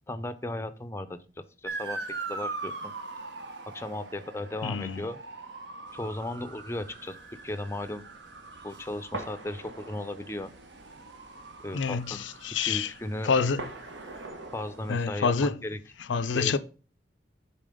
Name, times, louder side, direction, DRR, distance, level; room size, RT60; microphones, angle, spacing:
voice 1, 0.1-2.0 2.3-2.9 3.7-5.2 5.9-7.2 7.4-8.0 8.6-10.5 11.6-12.3 12.6-13.3 14.5-15.8 16.3-16.6, left 1 dB, 15° left, 0.5 m, -36 dB
Motor vehicle (road) / Siren, 1.7-14.3, right 3 dB, 65° right, 1.1 m, -42 dB
voice 2, 4.6-5.0 11.7-12.9 13.2-13.6 14.9-15.6 16.1-16.6, left 5 dB, 85° left, 0.5 m, -27 dB
sound 1, 5.9-15.1, right 2 dB, 80° right, 1.5 m, -46 dB
7.5 x 4.2 x 5.0 m
head